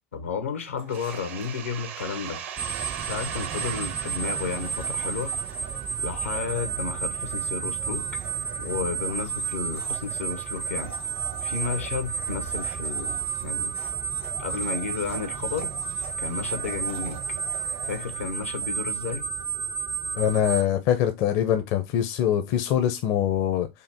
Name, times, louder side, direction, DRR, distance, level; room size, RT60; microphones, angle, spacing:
voice 1, 0.1-2.4 3.1-5.3 6.0-8.1 8.6-10.9 11.4-13.7 14.4-15.7 16.2-17.2 17.9-19.3, left 5 dB, 85° left, 0.8 m, -32 dB
Domestic sounds home sounds, 0.8-19.6, right 3 dB, 85° right, 1.8 m, -47 dB
sound 1, 0.9-6.4, right 9 dB, 65° right, 0.9 m, -39 dB
sound 2, 2.6-20.6, right 6 dB, 30° right, 0.4 m, -31 dB
voice 2, 20.2-23.7, left 10 dB, 50° left, 0.6 m, -23 dB
4.9 x 2.5 x 3.5 m
hypercardioid pair, 85°, 7 cm